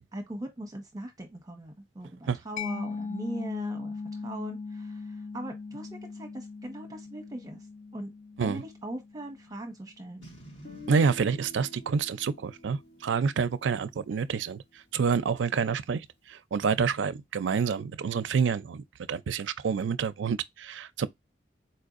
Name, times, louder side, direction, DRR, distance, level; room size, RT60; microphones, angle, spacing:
voice 1, 0.0-7.6 7.9-8.1 8.4-10.3, right 1 dB, 20° right, 1.0 m, -40 dB
Mallet percussion, 2.6-10.0, left 4 dB, 40° left, 0.3 m, -39 dB
Boom, 10.2-13.5, right 1 dB, 80° left, 2.1 m, -52 dB
Guitar, 10.6-14.6, left 1 dB, 65° left, 2.0 m, -48 dB
voice 2, 10.9-14.6 14.9-21.1, right 5 dB, 85° right, 0.4 m, -28 dB
4.4 x 2.6 x 2.4 m
head